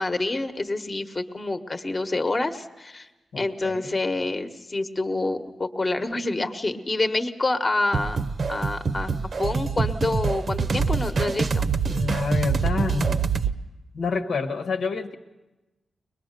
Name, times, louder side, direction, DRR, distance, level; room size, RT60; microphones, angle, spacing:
voice 1, 0.0-3.1 3.4-8.2 8.5-9.1 9.4-11.7, left 2 dB, 30° left, 7 dB, 1.2 m, -27 dB
voice 2, 3.3-4.0 11.9-13.2 13.9-15.1, left 4 dB, 85° left, 5 dB, 1.4 m, -28 dB
sound 1, 7.9-13.5, right 5 dB, 55° right, 0.8 m, -25 dB
21.5 x 21.5 x 6.7 m, 1.1 s
cardioid pair, 90°, 0 cm